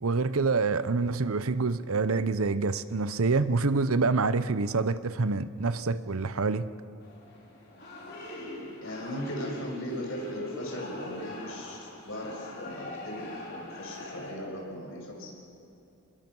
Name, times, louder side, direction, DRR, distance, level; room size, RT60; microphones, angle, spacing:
voice 1, 0.0-6.6, right 4 dB, 75° right, 14 dB, 0.8 m, -26 dB
sound 1, 7.0-14.3, left 1 dB, 50° left, 5.1 m, -41 dB
voice 2, 8.8-13.2 13.5-15.3, equal, 65° left, -1 dB, 6.4 m, -38 dB
26.5 x 21.5 x 6.2 m, 2.8 s
head